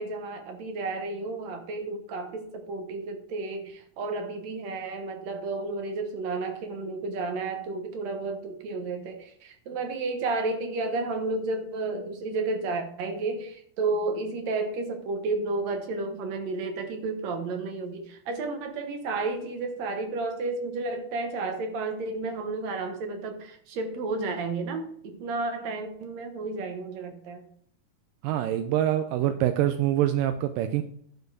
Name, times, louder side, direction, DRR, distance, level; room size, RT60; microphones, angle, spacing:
voice 1, 0.0-27.4, right 3 dB, 65° right, 6 dB, 2.0 m, -32 dB
voice 2, 28.2-30.8, right 12 dB, 85° right, 8 dB, 2.2 m, -25 dB
12.0 x 4.4 x 4.7 m, 0.65 s
omnidirectional pair, 4.0 m